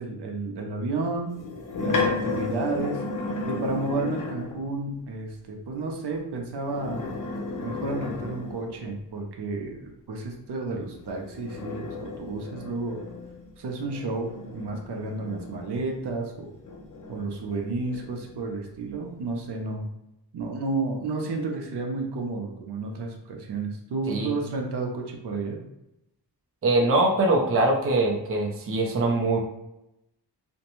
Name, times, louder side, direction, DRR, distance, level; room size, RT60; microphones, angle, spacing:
voice 1, 0.0-1.4 1.8-3.0 3.5-7.0 7.6-13.0 13.6-16.5 17.1-19.9 20.3-25.6, right 3 dB, 75° right, 1 dB, 0.6 m, -31 dB
sound 1, 1.3-4.6 6.6-8.9 10.9-16.1 16.6-18.4, left 3 dB, 50° left, 0.5 m, -33 dB
voice 2, 26.6-29.4, right 2 dB, 35° right, 0 dB, 0.5 m, -22 dB
2.5 x 2.1 x 2.9 m, 0.88 s
wide cardioid pair, 130°, 41 cm